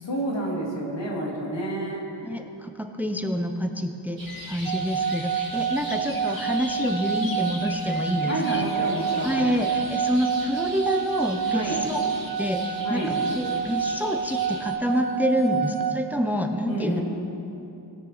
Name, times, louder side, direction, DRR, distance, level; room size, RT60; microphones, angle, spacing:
voice 1, 0.0-2.1 8.2-9.5 11.5-11.8 12.8-13.1 16.7-17.0, right 1 dB, 85° left, -3 dB, 2.1 m, -29 dB
voice 2, 2.2-8.6 9.2-12.0 12.4-17.0, equal, 5° right, 5 dB, 0.6 m, -27 dB
sound 1, 4.2-14.7, right 2 dB, 85° right, 2.3 m, -41 dB
sound 2, 4.3-11.6, left 5 dB, 50° left, 0.8 m, -44 dB
sound 3, 4.7-15.9, right 7 dB, 60° right, 0.7 m, -28 dB
18.5 x 6.6 x 4.0 m, 2.9 s
wide cardioid pair, 90°, 43 cm